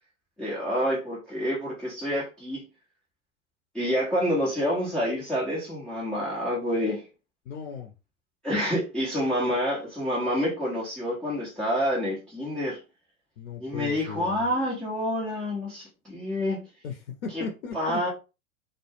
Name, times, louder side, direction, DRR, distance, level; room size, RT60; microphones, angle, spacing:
voice 1, 0.4-2.6 3.7-7.0 8.4-12.8 13.6-16.6 17.3-17.4 17.7-18.1, equal, ahead, 0.3 m, -28 dB
voice 2, 7.5-7.9 13.4-14.5 16.8-18.0, left 6 dB, 60° left, 0.6 m, -36 dB
2.2 x 2.0 x 3.1 m
figure-of-eight pair, 95°, 43 cm